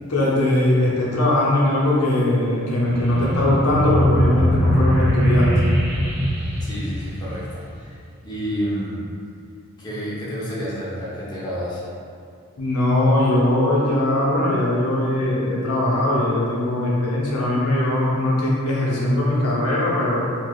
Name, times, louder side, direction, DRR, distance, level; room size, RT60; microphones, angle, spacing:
voice 1, 0.1-5.5 12.6-20.2, left 1 dB, 85° left, -5 dB, 0.8 m, -20 dB
sound 1, 2.9-7.8, equal, 60° right, 0.9 m, -21 dB
voice 2, 6.6-7.9 8.2-9.2 9.8-11.9, equal, 20° left, -7 dB, 0.7 m, -29 dB
3.2 x 2.9 x 2.3 m, 2.3 s
head